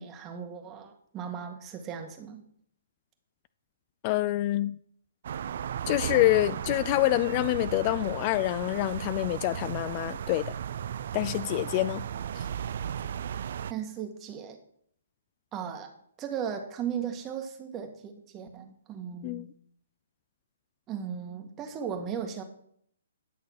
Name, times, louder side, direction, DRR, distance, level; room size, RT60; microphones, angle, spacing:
voice 1, 0.0-2.4 13.7-14.6 15.5-15.9 16.2-19.5 20.9-22.4, right 8 dB, 20° right, 5 dB, 1.7 m, -36 dB
voice 2, 4.0-4.8 5.9-10.5 11.1-12.0 12.4-12.5 19.2-19.5, left 17 dB, 35° left, 17 dB, 0.3 m, -26 dB
sound 1, 5.2-13.7, right 9 dB, 60° right, 0.4 m, -35 dB
11.0 x 6.5 x 5.9 m, 0.67 s
hypercardioid pair, 140°, 0 cm